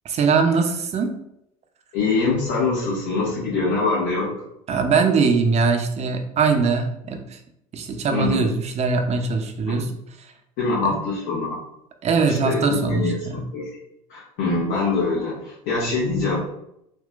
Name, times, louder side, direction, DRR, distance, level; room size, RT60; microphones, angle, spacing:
voice 1, 0.0-1.2 4.7-7.4 7.7-9.9 10.2-10.3 10.8-11.0 12.0-13.4, right 5 dB, 35° right, 4 dB, 0.6 m, -21 dB
voice 2, 1.9-4.3 8.1-8.5 10.6-11.5 12.3-13.8 14.1-16.4, left 3 dB, 65° left, -7 dB, 1.0 m, -24 dB
3.7 x 2.3 x 2.4 m, 0.81 s
hypercardioid pair, 65°, 18 cm